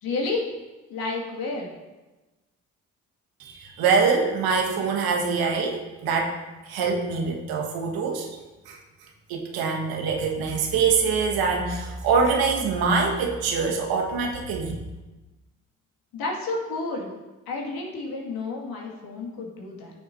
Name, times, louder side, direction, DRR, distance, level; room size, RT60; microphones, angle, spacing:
voice 1, 0.0-0.5 0.9-1.7 16.1-17.1 17.5-19.9, left 3 dB, 65° left, -1 dB, 2.3 m, -30 dB
voice 2, 3.4-6.3 6.7-8.3 8.7-8.8 9.3-14.8, right 5 dB, 65° right, 1 dB, 1.7 m, -24 dB
14.0 x 6.5 x 2.8 m, 1.1 s
hypercardioid pair, 50°, 39 cm